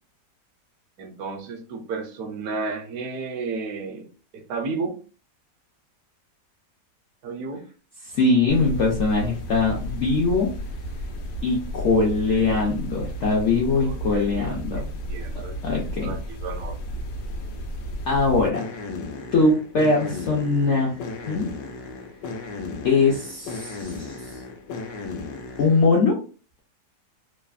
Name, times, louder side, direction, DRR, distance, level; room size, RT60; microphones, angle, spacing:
voice 1, 1.0-5.0 7.2-7.6 12.3-12.7 13.8-14.5 14.7-15.6 16.0-16.8, right 4 dB, 70° right, 3 dB, 1.0 m, -33 dB
voice 2, 8.0-10.5 11.4-14.8 15.6-16.1 18.1-18.7 19.3-21.5 22.8-24.2 25.6-26.2, left 3 dB, 70° left, -2 dB, 0.7 m, -22 dB
sound 1, 8.5-25.9, equal, 85° left, 1.3 m, -34 dB
3.2 x 2.0 x 2.3 m, 0.37 s
omnidirectional pair, 1.9 m